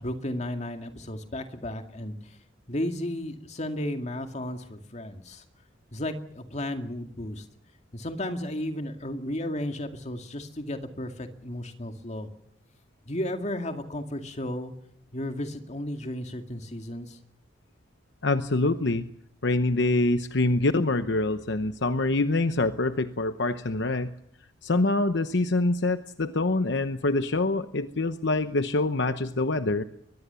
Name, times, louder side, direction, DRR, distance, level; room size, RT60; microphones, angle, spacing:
voice 1, 0.0-2.2 2.7-5.4 5.9-7.4 7.9-12.3 13.1-14.7 15.1-17.2, left 1 dB, 35° left, 6 dB, 2.2 m, -34 dB
voice 2, 18.2-19.1 19.4-24.1 24.6-29.8, left 2 dB, 65° left, 10 dB, 0.9 m, -25 dB
22.5 x 21.5 x 7.0 m, 0.73 s
head